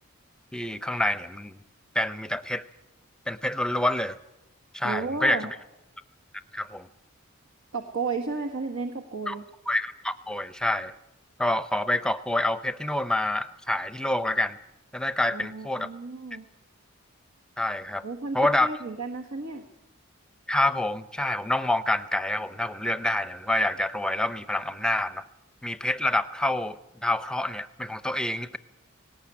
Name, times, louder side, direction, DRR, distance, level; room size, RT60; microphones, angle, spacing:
voice 1, 0.5-1.6 1.9-2.6 3.3-4.2 4.7-5.6 6.5-6.9 9.3-9.4 9.7-10.9 11.4-14.6 14.9-15.9 17.6-18.0 18.3-18.7 20.5-25.2 25.6-28.6, left 1 dB, 5° left, 13 dB, 0.6 m, -27 dB
voice 2, 4.8-5.5 7.7-9.4 15.3-16.5 18.0-19.6, right 4 dB, 80° right, 3 dB, 1.6 m, -33 dB
18.5 x 18.0 x 8.7 m, 0.95 s
head